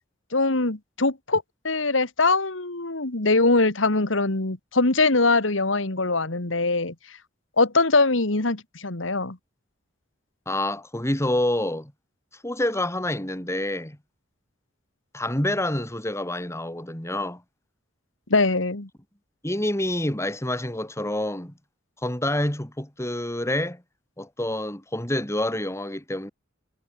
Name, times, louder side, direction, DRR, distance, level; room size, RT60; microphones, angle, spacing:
voice 1, 0.3-6.9 7.6-9.4 18.3-18.9, left 3 dB, 80° left, 2.3 m, -22 dB
voice 2, 10.4-11.9 12.4-14.0 15.1-17.4 19.4-21.5 22.0-23.8 24.2-26.3, left 1 dB, 15° left, 3.3 m, -27 dB
head